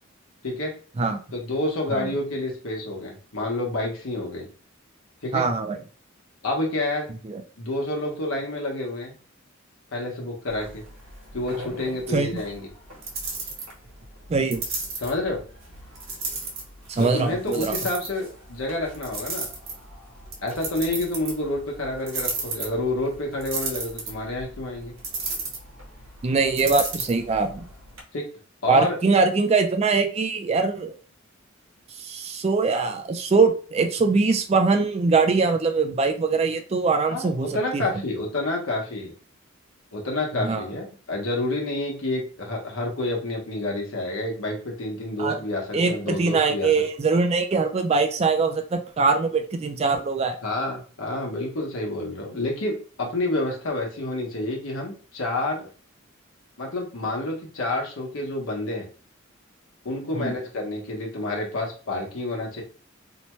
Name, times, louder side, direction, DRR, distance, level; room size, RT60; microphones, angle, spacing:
voice 1, 0.4-0.7 1.3-4.5 5.2-5.5 6.4-7.1 7.6-9.1 9.9-10.8 11.3-12.7 15.0-15.4 17.0-19.5 20.4-24.9 28.1-28.3 28.6-29.0 37.1-39.1 39.9-46.7 50.4-55.7 56.6-58.9 59.8-62.6, left 2 dB, 85° left, 0 dB, 1.0 m, -29 dB
voice 2, 5.3-5.8 7.2-7.4 12.1-12.4 14.3-14.6 16.9-17.8 26.2-27.7 28.7-30.9 32.0-37.8 40.4-40.7 45.2-45.3 45.7-50.4 60.1-60.3, right 4 dB, 30° right, 5 dB, 0.3 m, -22 dB
sound 1, 10.5-28.0, right 3 dB, 70° right, 1.1 m, -35 dB
2.7 x 2.2 x 2.9 m, 0.39 s
head